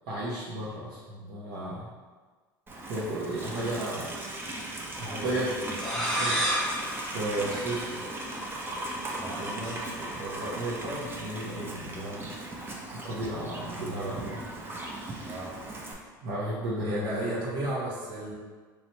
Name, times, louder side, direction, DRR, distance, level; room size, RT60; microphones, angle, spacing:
voice 1, 0.1-1.9 2.9-4.0 5.0-5.5 5.9-6.4 6.9-8.0 9.3-12.3 12.9-14.4 16.2-17.3, right 1 dB, 60° right, -9 dB, 0.8 m, -34 dB
Livestock farm animals working animals, 2.7-15.9, right 1 dB, 20° right, 0.6 m, -38 dB
voice 2, 3.4-3.7 5.0-5.7 9.0-9.8 15.2-15.5 16.8-18.3, right 1 dB, 40° right, -6 dB, 1.4 m, -35 dB
sound 1, 5.7-8.3, equal, 5° left, 1.0 m, -31 dB
3.1 x 2.9 x 2.7 m, 1.4 s
hypercardioid pair, 80°, 11 cm